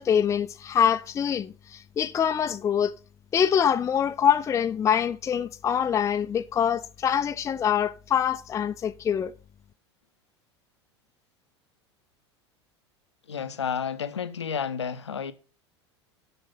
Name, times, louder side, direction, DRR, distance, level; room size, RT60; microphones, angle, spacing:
voice 1, 0.0-3.0 3.3-9.3, left 8 dB, 20° left, 0.5 m, -24 dB
voice 2, 13.3-15.3, left 7 dB, 80° left, 0.8 m, -31 dB
8.0 x 6.1 x 5.6 m
figure-of-eight pair, 80°, 14 cm